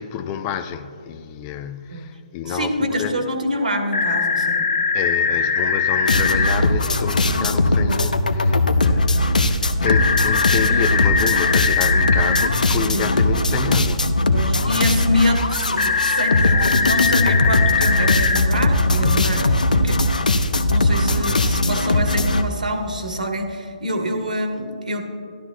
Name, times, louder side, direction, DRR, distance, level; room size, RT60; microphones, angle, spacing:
voice 1, 0.0-3.3 4.9-14.1, left 8 dB, 25° left, 0.3 m, -29 dB
voice 2, 2.5-4.6 12.9-13.2 14.3-20.0 20.3-25.0, left 1 dB, 85° right, 1.4 m, -26 dB
sound 1, 3.9-6.5 9.8-12.5 15.8-18.4, left 5 dB, 65° left, 1.0 m, -21 dB
sound 2, 6.1-22.4, left 2 dB, 90° left, 0.6 m, -19 dB
12.0 x 12.0 x 2.3 m
hypercardioid pair, 150°, 4 cm